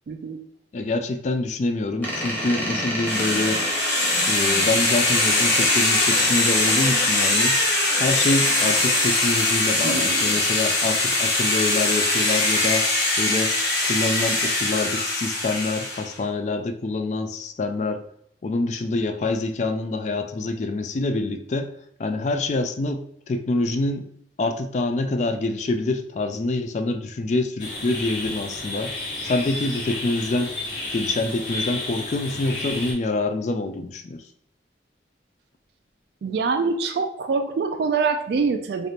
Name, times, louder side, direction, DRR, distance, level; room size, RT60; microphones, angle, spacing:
voice 1, 0.1-0.4 9.8-10.5 36.2-38.9, right 4 dB, 60° right, 6 dB, 0.3 m, -25 dB
voice 2, 0.7-3.6 4.3-7.6 8.0-12.9 13.2-13.6 13.8-18.0 18.4-21.7 22.0-24.1 24.4-28.9 29.2-30.5 30.9-34.2, left 2 dB, 40° left, 8 dB, 0.3 m, -26 dB
Door, 2.0-10.5, equal, 10° left, 0.9 m, -29 dB
sound 1, 3.0-16.1, left 2 dB, 70° left, 1.3 m, -22 dB
sound 2, 27.6-32.9, left 2 dB, 85° left, 1.5 m, -32 dB
3.4 x 2.5 x 4.1 m, 0.68 s
head